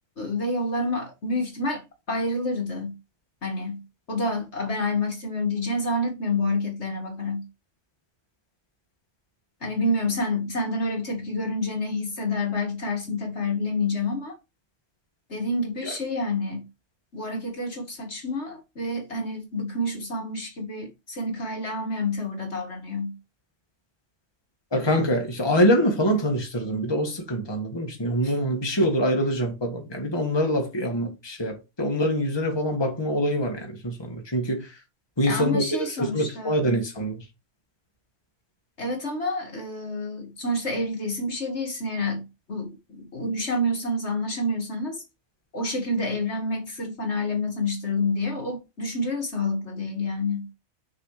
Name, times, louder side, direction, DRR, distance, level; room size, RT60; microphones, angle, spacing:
voice 1, 0.2-2.9 3.4-3.8 4.1-7.4 9.6-14.4 15.3-16.7 17.1-23.1 28.2-28.3 35.2-36.6 38.8-45.0 45.5-50.5, left 2 dB, 65° left, 2.4 m, -28 dB
voice 2, 24.7-34.0 34.3-34.7 35.2-37.2, equal, 20° left, 1.8 m, -24 dB
6.4 x 4.8 x 5.0 m
omnidirectional pair, 1.3 m